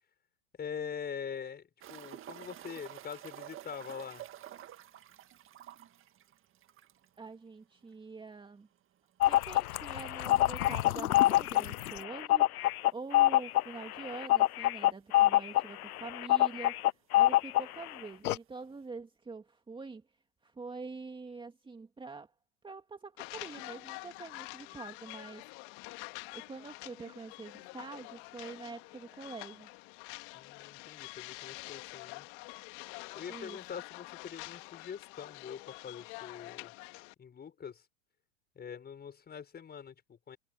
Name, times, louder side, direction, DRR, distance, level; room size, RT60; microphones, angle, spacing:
voice 1, 0.6-4.3 30.3-32.3 33.1-36.7 37.2-37.9 38.5-40.4, left 7 dB, 20° left, 6.2 m, -44 dB
sound 1, 1.8-7.2 7.5-7.6 7.9-8.0 10.8-10.9 12.6-12.7 13.5-13.6 13.8-13.9 14.8-14.9 15.0-15.7 16.6-16.7, right 12 dB, 30° right, 1.9 m, -50 dB
voice 2, 7.2-8.7 9.3-16.9 17.1-20.0 20.4-22.3 22.6-25.4 26.3-29.7 33.3-33.6, right 4 dB, 10° right, 2.4 m, -45 dB
sound 2, 9.2-17.9 18.2-18.4, left 15 dB, 85° left, 0.6 m, -26 dB
sound 3, 23.2-37.1, left 27 dB, 50° left, 2.0 m, -47 dB
hypercardioid pair, 110°, 43 cm